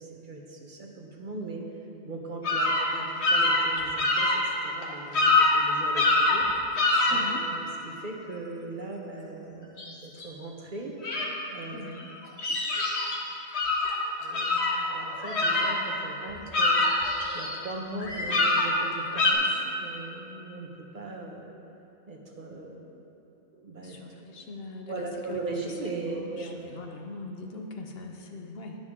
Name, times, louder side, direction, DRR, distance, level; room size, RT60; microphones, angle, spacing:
voice 1, 0.0-1.6 2.0-6.4 7.1-10.9 11.5-11.8 14.2-16.9 17.3-20.7 20.9-21.5 22.1-22.9 23.5-24.0 24.9-26.6, right 2 dB, 50° right, 0 dB, 1.2 m, -39 dB
sound 1, 2.4-2.9 3.2-4.4 4.8-4.9 5.1-5.6 5.9-6.4 6.8-7.2 9.8-9.9 10.2-10.3 11.0-11.3 12.0-13.2 13.5-13.9 14.3-16.0 16.3-17.6 18.0-18.7 19.1-19.3, left 2 dB, 90° left, 1.6 m, -24 dB
voice 2, 7.1-7.4 11.7-12.1 23.8-28.8, left 3 dB, 65° left, 3 dB, 1.1 m, -41 dB
11.5 x 10.5 x 3.7 m, 2.8 s
omnidirectional pair, 1.1 m